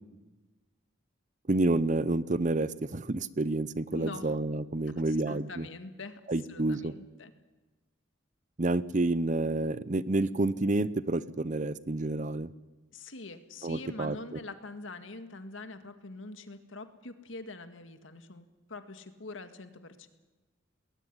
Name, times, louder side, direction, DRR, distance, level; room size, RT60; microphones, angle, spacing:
voice 1, 1.5-5.7 6.3-6.9 8.6-12.5 13.6-14.2, right 2 dB, 40° right, 17 dB, 0.7 m, -29 dB
voice 2, 3.9-4.4 5.1-6.2 6.5-7.3 12.9-20.1, left 3 dB, 85° left, 9 dB, 1.9 m, -44 dB
20.5 x 18.0 x 9.8 m, 1.2 s
head